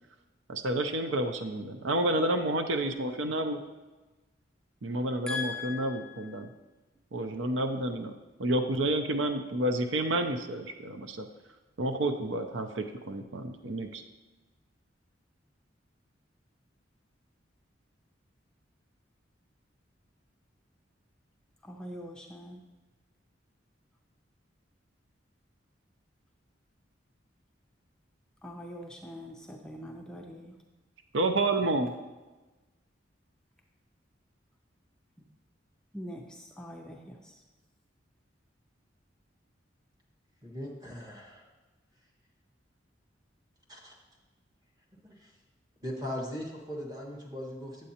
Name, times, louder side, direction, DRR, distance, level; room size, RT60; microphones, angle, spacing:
voice 1, 0.5-3.6 4.8-6.5 7.1-8.1 8.4-11.3 11.8-14.0 31.1-31.9, right 1 dB, 90° right, 7 dB, 0.6 m, -30 dB
voice 2, 5.3-6.5 21.6-22.6 28.4-30.6 35.9-37.4, left 3 dB, 5° left, 0 dB, 0.5 m, -41 dB
voice 3, 40.4-41.5 43.7-43.9 45.0-45.3 45.8-47.9, equal, 20° right, -1 dB, 1.4 m, -39 dB
9.0 x 7.5 x 2.8 m, 1.2 s
head